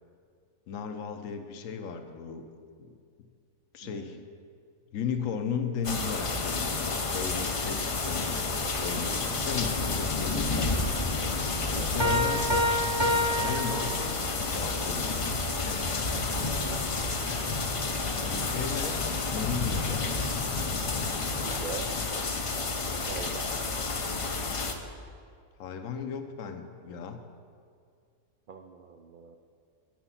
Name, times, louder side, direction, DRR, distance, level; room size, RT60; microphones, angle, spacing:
voice 1, 0.7-2.4 3.7-4.2 4.9-10.8 11.6-12.5 13.1-13.9 14.3-16.3 16.6-16.8 18.3-19.0 19.3-20.1 25.6-27.2, left 6 dB, 75° left, 7 dB, 1.1 m, -36 dB
voice 2, 3.8-4.2 11.7-12.1 16.1-16.5 21.4-21.9 23.1-23.5 28.5-29.4, right 6 dB, 70° right, 4 dB, 0.4 m, -42 dB
sound 1, 5.8-24.7, left 3 dB, 45° left, 0.4 m, -30 dB
Piano, 12.0-14.5, equal, 25° right, 0.6 m, -28 dB
9.0 x 6.8 x 5.6 m, 2.2 s
omnidirectional pair, 1.4 m